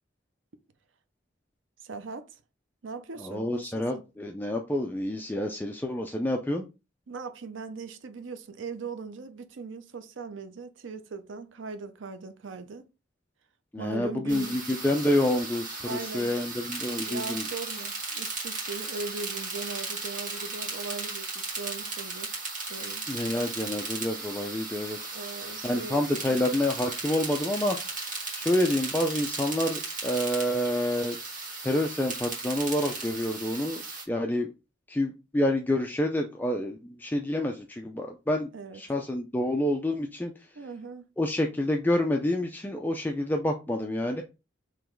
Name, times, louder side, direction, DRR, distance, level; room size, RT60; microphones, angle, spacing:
voice 1, 1.8-2.3 2.8-4.0 7.1-12.9 13.8-14.6 15.8-16.3 17.1-23.0 23.4-23.6 25.1-26.5 38.5-38.8 40.6-41.1, right 4 dB, 80° right, 0.6 m, -39 dB
voice 2, 3.2-6.7 13.7-17.5 23.1-25.0 25.6-27.8 28.3-31.2 31.6-33.8 34.1-34.5 34.9-38.5 38.7-40.3 41.2-44.2, left 1 dB, 10° left, 0.3 m, -28 dB
sound 1, 14.3-34.0, right 3 dB, 40° right, 1.7 m, -36 dB
3.8 x 3.0 x 4.4 m
head